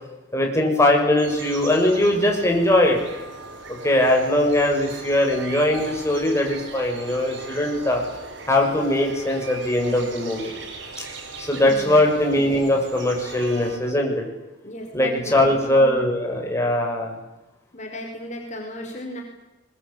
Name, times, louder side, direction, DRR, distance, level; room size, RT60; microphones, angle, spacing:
voice 1, 0.3-3.0 3.8-8.0 8.5-10.5 11.4-14.2 14.9-17.1, left 1 dB, 15° left, 0 dB, 6.9 m, -20 dB
sound 1, 1.2-13.8, right 3 dB, 85° right, 6.0 m, -38 dB
voice 2, 11.5-12.1 14.6-16.0 17.7-19.2, equal, 40° left, 2 dB, 5.1 m, -35 dB
24.0 x 22.5 x 8.7 m, 1.0 s
head